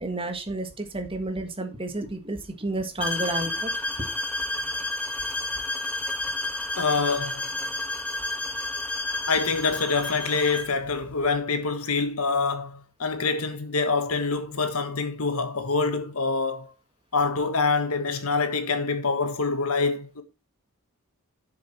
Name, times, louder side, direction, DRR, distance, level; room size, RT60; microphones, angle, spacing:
voice 1, 0.0-3.7, right 2 dB, 25° right, 1.5 m, -31 dB
sound 1, 3.0-10.8, left 2 dB, 5° left, 1.4 m, -30 dB
voice 2, 6.8-7.5 9.3-16.7 17.1-20.2, left 4 dB, 75° left, 1.5 m, -26 dB
7.6 x 7.1 x 4.2 m
head